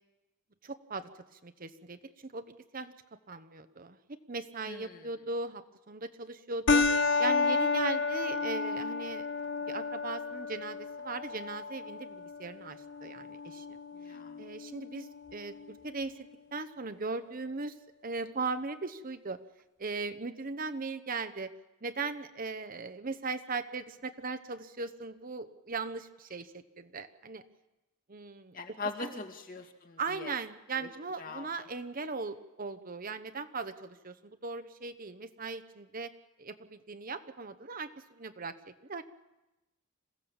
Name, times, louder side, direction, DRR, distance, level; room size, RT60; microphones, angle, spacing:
voice 1, 0.6-2.9 3.3-9.3 9.7-13.8 14.4-16.2 16.5-17.8 18.0-19.4 19.8-21.5 21.8-27.4 28.1-28.6 29.0-29.1 30.0-36.1 36.4-39.0, right 4 dB, 40° right, 9 dB, 1.0 m, -38 dB
voice 2, 4.7-5.1 14.0-14.4 28.5-30.3 31.2-31.5, left 3 dB, 40° left, 4 dB, 2.1 m, -41 dB
sound 1, 6.7-15.7, left 4 dB, 55° left, 0.9 m, -32 dB
27.0 x 16.0 x 7.2 m, 1.0 s
head